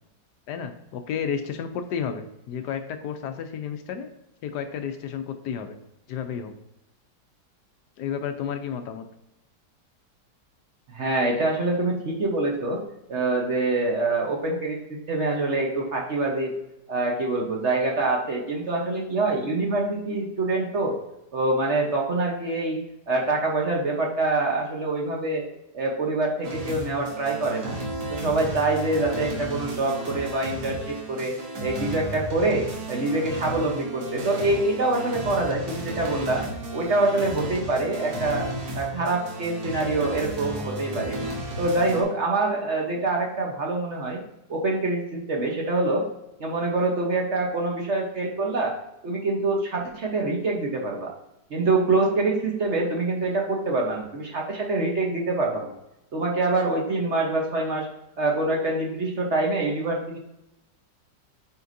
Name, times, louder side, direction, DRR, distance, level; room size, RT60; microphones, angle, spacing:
voice 1, 0.5-4.1 4.4-5.8 6.1-6.5 8.0-9.0, left 7 dB, 75° left, 7 dB, 1.1 m, -32 dB
voice 2, 10.9-12.8 13.1-14.8 15.1-16.5 16.9-21.0 21.3-22.8 23.1-25.4 25.7-27.8 28.1-31.3 31.6-36.4 36.7-38.5 38.7-41.2 41.6-44.2 44.5-46.0 46.4-48.7 49.0-51.1 51.5-55.7 56.1-57.9 58.2-60.2, right 2 dB, 45° right, 0 dB, 1.1 m, -25 dB
sound 1, 26.4-42.0, right 1 dB, 75° right, 2.0 m, -34 dB
8.3 x 4.5 x 2.6 m, 0.88 s
omnidirectional pair, 1.9 m